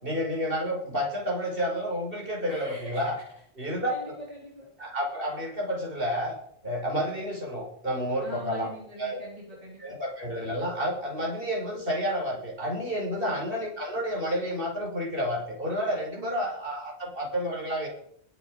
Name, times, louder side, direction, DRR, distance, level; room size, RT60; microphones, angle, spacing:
voice 1, 0.0-3.2 3.6-4.1 4.8-6.4 6.6-8.7 9.0-9.2 9.8-17.9, equal, 55° right, -1 dB, 5.7 m, -30 dB
voice 2, 2.5-3.0 3.6-4.7 8.2-10.0 13.2-13.4 16.2-16.4, equal, 35° right, -3 dB, 3.9 m, -42 dB
22.0 x 8.4 x 5.1 m, 0.68 s
omnidirectional pair, 1.1 m